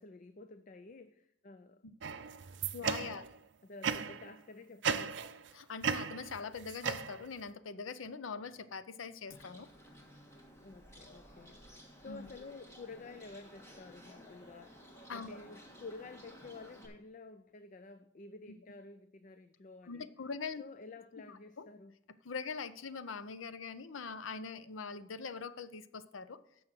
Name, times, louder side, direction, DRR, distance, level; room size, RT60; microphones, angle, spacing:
voice 1, 0.0-1.8 2.1-3.2 3.6-5.2 10.6-11.6 12.0-14.8 15.1-20.1 20.6-22.0, left 3 dB, 40° left, 10 dB, 0.4 m, -51 dB
sound 1, 2.0-3.4 3.8-4.3 4.8-5.5 5.8-7.5, right 6 dB, 65° right, 0.5 m, -36 dB
voice 2, 2.7-3.2 5.5-9.7 12.1-12.3 15.1-15.4 18.5-18.6 19.9-20.6 21.3-21.7 22.2-26.4, left 5 dB, 85° left, 13 dB, 0.6 m, -43 dB
Bird, 9.3-16.9, equal, 15° left, 1.5 m, -55 dB
9.5 x 6.3 x 6.5 m, 0.75 s
head